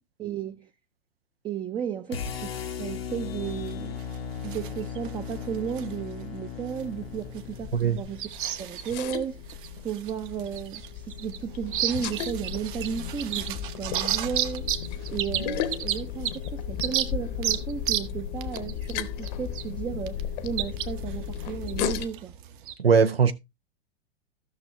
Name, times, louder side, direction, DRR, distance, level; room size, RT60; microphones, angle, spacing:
voice 1, 0.2-0.7 1.4-4.0 4.4-8.3 8.6-14.8 15.1-22.3, right 8 dB, 15° right, 0.5 m, -34 dB
sound 1, 2.1-8.3, left 7 dB, 80° left, 1.1 m, -37 dB
sound 2, 3.5-22.7, right 11 dB, 60° right, 1.0 m, -34 dB
sound 3, 6.8-22.1, left 9 dB, 45° left, 0.9 m, -35 dB
voice 2, 22.8-23.3, right 6 dB, 90° right, 0.6 m, -20 dB
14.5 x 6.1 x 3.1 m
figure-of-eight pair, 95°, 29 cm